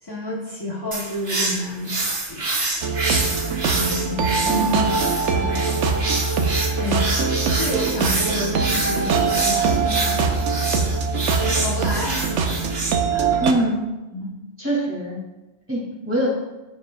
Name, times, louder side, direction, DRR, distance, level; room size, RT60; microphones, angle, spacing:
voice 1, 0.0-2.4 3.7-4.6 5.3-5.7 6.8-10.1 11.4-12.8 13.1-13.3 14.1-14.3, left 1 dB, 20° left, -5 dB, 1.1 m, -30 dB
sound 1, 0.9-12.9, right 2 dB, 50° right, 1.5 m, -27 dB
sound 2, 2.8-13.5, right 5 dB, 85° right, 1.1 m, -23 dB
voice 2, 4.5-4.9 6.8-6.9 13.4-13.8 14.6-15.1 15.7-16.3, right 1 dB, 10° right, -5 dB, 2.6 m, -23 dB
14.0 x 5.4 x 2.4 m, 1.0 s
omnidirectional pair, 1.2 m